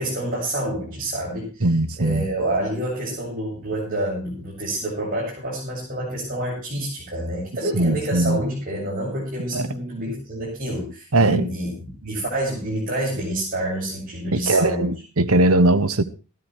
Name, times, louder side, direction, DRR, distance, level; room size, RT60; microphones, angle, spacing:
voice 1, 0.0-1.7 2.0-14.9, right 1 dB, 40° right, 7.9 m, -28 dB
voice 2, 1.6-2.3 7.7-8.4 9.5-9.7 11.1-11.5 14.3-16.0, right 2 dB, 65° right, 1.3 m, -19 dB
15.5 x 12.5 x 4.7 m
head